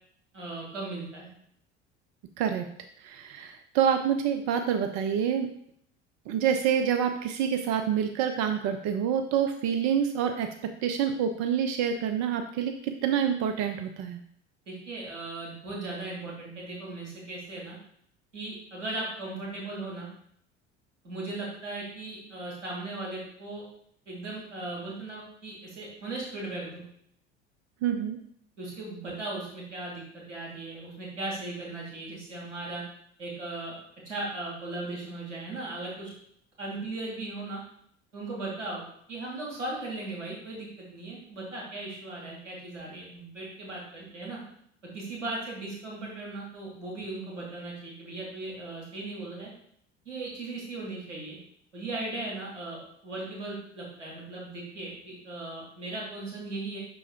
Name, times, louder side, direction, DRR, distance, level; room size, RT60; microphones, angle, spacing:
voice 1, 0.3-1.3 14.7-17.8 18.3-20.1 21.0-23.6 24.1-26.8 28.6-32.8 33.2-33.7 34.0-36.1 36.6-37.6 38.1-38.8 39.1-44.4 44.9-49.5 50.1-51.4 51.7-56.8, right 2 dB, 85° right, -4 dB, 2.3 m, -37 dB
voice 2, 3.0-5.5 6.3-14.2 27.8-28.2, right 8 dB, 50° right, 7 dB, 0.6 m, -27 dB
5.9 x 3.9 x 4.5 m, 0.67 s
figure-of-eight pair, 65°, 36 cm